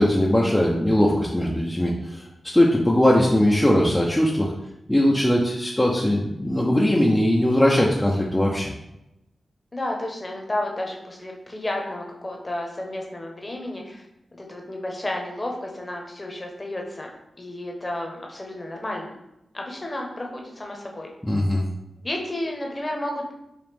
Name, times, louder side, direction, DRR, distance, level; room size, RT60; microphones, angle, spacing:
voice 1, 0.0-4.5 4.9-8.7 21.2-21.6, left 1 dB, 15° left, -3 dB, 0.6 m, -20 dB
voice 2, 9.7-14.0 14.3-17.1 17.4-19.2 19.5-21.1 22.0-23.3, left 1 dB, 30° left, 1 dB, 1.0 m, -32 dB
5.0 x 2.5 x 3.4 m, 0.88 s
cardioid pair, 50°, 0 cm